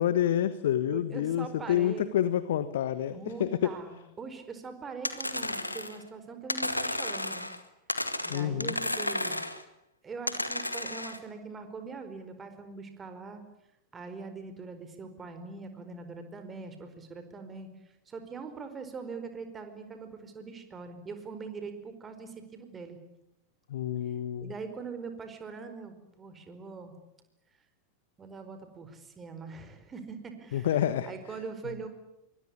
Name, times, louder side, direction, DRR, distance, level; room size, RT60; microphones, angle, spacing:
voice 1, 0.0-3.7 8.3-8.7 23.7-24.5 30.5-31.1, left 11 dB, 60° left, 14 dB, 1.3 m, -28 dB
voice 2, 0.9-2.1 3.1-7.5 8.2-9.4 10.0-13.4 13.9-17.7 18.1-23.0 24.0-24.1 24.4-26.9 28.2-31.9, right 4 dB, 20° right, 8 dB, 4.7 m, -42 dB
sound 1, 5.0-6.0 6.5-7.6 7.9-9.6 10.3-11.2, left 1 dB, 85° left, 2.0 m, -33 dB
24.5 x 22.0 x 9.8 m, 0.87 s
figure-of-eight pair, 90°, 0 cm